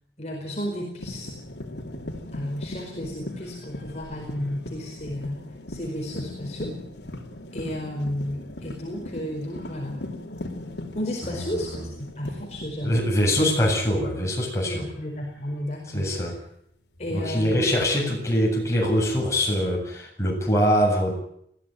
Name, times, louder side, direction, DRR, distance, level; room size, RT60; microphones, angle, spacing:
voice 1, 0.2-1.3 2.3-6.8 7.5-10.0 10.9-13.0 14.7-16.3 17.0-17.8, equal, 40° left, 0 dB, 4.7 m, -33 dB
sound 1, 1.0-14.5 14.8-15.2 16.9-17.1 19.0-19.6, left 1 dB, 80° left, 3.6 m, -39 dB
voice 2, 11.3-11.8 12.8-14.9 15.9-16.4 17.1-21.1, equal, 15° left, -1 dB, 7.9 m, -23 dB
21.5 x 16.5 x 9.3 m, 0.71 s
head